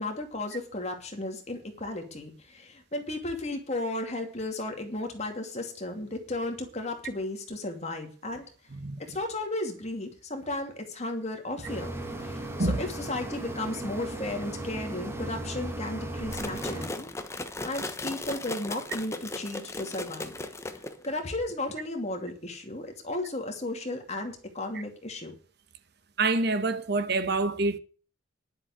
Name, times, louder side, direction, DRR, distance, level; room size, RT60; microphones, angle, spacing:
voice 1, 0.0-8.5 9.1-11.9 12.2-17.1 17.6-20.3 21.0-25.3, left 2 dB, 35° left, 2.6 m, -34 dB
sound 1, 11.6-16.9, right 1 dB, 15° right, 2.0 m, -36 dB
sound 2, 16.3-21.2, left 2 dB, 15° left, 1.1 m, -37 dB
voice 2, 26.2-27.8, right 3 dB, 55° right, 1.2 m, -26 dB
11.0 x 7.6 x 8.0 m
head